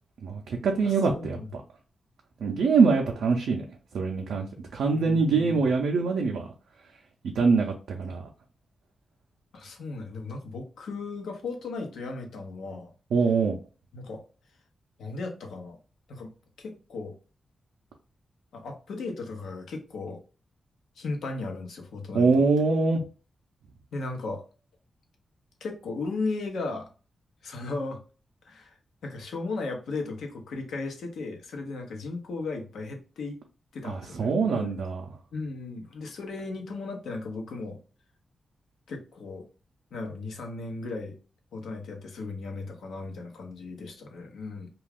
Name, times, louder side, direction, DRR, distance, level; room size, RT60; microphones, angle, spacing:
voice 1, 0.2-1.6 2.4-3.6 3.9-4.5 4.7-6.4 7.4-8.2 13.1-13.6 22.1-23.0 33.8-35.0, right 4 dB, 90° right, 0.4 m, -24 dB
voice 2, 0.8-1.5 4.9-5.7 9.5-12.9 13.9-14.2 15.0-15.8 16.1-16.3 16.6-17.2 18.5-20.2 21.0-22.4 23.9-24.4 25.6-26.9 27.4-28.0 28.5-33.4 33.7-34.7 35.3-37.8 38.9-39.4 39.9-41.2 41.5-44.7, left 3 dB, 90° left, 0.7 m, -36 dB
2.4 x 2.3 x 3.4 m
cardioid pair, 60°, 0 cm